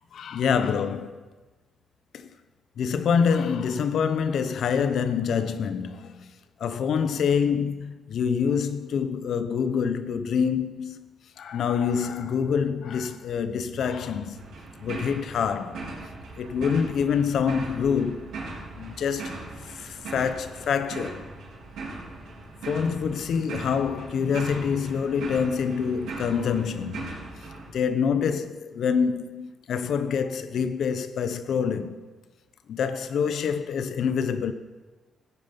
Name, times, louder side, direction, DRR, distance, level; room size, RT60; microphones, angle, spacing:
voice 1, 0.1-1.3 2.1-2.3 2.8-6.3 6.6-11.1 11.4-14.4 14.8-15.8 16.4-18.3 18.7-21.2 22.7-27.1 27.7-32.0 32.7-34.5, left 6 dB, 75° left, 0.9 m, -26 dB
sound 1, 14.3-27.7, right 3 dB, 80° right, 4.5 m, -39 dB
16.0 x 9.5 x 5.4 m
cardioid pair, 70°, 0 cm